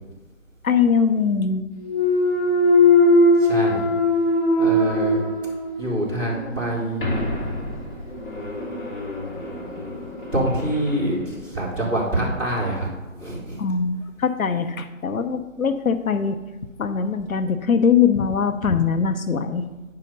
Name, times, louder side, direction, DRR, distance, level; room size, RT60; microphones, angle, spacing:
voice 1, 0.6-1.6 13.6-16.4 16.8-19.6, left 6 dB, 85° left, 9 dB, 0.9 m, -21 dB
Thump thud, 1.8-5.9 6.3-11.0, left 2 dB, 40° left, 2.8 m, -21 dB
voice 2, 3.4-3.8 4.6-5.2 5.8-7.2 10.3-12.9 13.1-13.6, right 1 dB, 5° right, -15 dB, 2.3 m, -25 dB
9.9 x 5.7 x 5.4 m, 1.1 s
hypercardioid pair, 170°, 41 cm